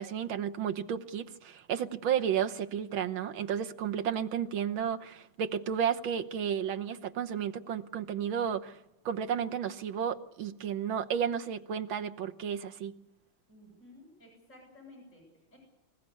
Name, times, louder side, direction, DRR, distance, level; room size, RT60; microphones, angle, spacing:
voice 1, 0.0-8.8 9.1-12.9, right 8 dB, 85° right, 6 dB, 1.9 m, -32 dB
voice 2, 13.5-15.6, left 2 dB, 35° left, -1 dB, 8.4 m, -55 dB
26.0 x 15.5 x 8.5 m, 0.93 s
omnidirectional pair, 2.2 m